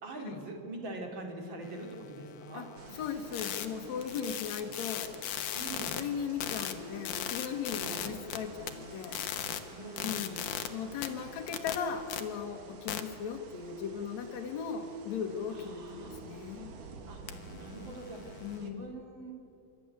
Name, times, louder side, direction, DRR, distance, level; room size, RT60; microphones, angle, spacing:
voice 1, 0.0-2.7 5.5-5.9 7.7-8.0 9.7-10.2 15.5-16.2 17.1-17.2 17.5-19.3, right 2 dB, 40° right, 2 dB, 3.3 m, -43 dB
sound 1, 1.6-6.0 6.4-8.4 8.7-10.7 11.0-12.2 12.9-13.0 17.3-18.6, left 10 dB, 80° left, 2.7 m, -39 dB
sound 2, 2.8-18.7, right 4 dB, 80° right, 3.4 m, -51 dB
voice 2, 2.9-5.2 5.8-9.3 10.0-16.8 18.4-19.0, left 7 dB, 65° left, 4 dB, 2.8 m, -38 dB
25.5 x 13.0 x 9.7 m, 2.7 s
omnidirectional pair, 3.6 m